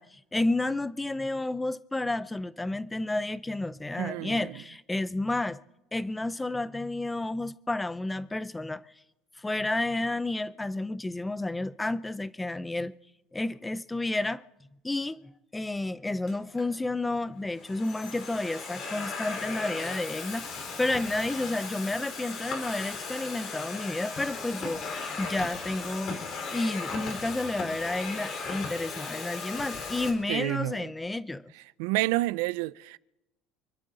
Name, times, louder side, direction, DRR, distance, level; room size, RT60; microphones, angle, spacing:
voice 1, 0.0-5.6 5.9-8.8 9.4-12.9 13.3-14.4 14.8-15.2 15.5-26.2 26.5-31.5, left 2 dB, 5° left, 0.5 m, -31 dB
voice 2, 4.0-4.5 30.3-30.8 31.8-33.0, right 19 dB, 90° right, 0.5 m, -29 dB
Domestic sounds home sounds, 16.3-16.7 17.4-30.1, left 4 dB, 35° left, 3.6 m, -37 dB
28.0 x 12.0 x 3.9 m
cardioid pair, 175°, 0 cm